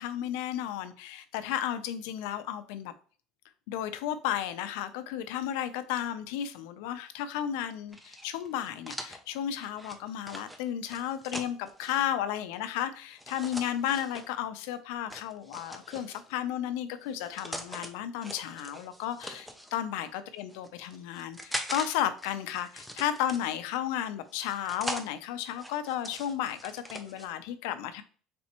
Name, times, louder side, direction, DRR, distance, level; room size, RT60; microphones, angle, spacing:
voice 1, 0.0-2.9 3.7-28.0, left 11 dB, 85° left, 0.5 m, -33 dB
sound 1, 7.9-12.0 13.2-14.3 15.1-16.3 17.0-17.9 18.2-19.7 20.4-21.9 22.2-23.7 24.3-25.1 25.5-27.3, equal, ahead, 0.4 m, -41 dB
4.2 x 3.4 x 2.9 m
cardioid pair, 170°, 0 cm